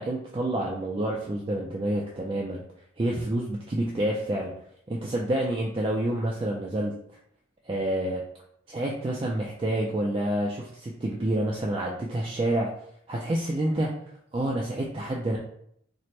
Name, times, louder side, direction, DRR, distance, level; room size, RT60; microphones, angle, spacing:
voice 1, 0.0-2.6 3.0-4.5 4.9-6.9 7.7-8.2 8.7-12.7 13.1-13.9 14.3-15.4, right 1 dB, 25° right, -2 dB, 0.3 m, -28 dB
4.2 x 2.1 x 3.1 m, 0.69 s
head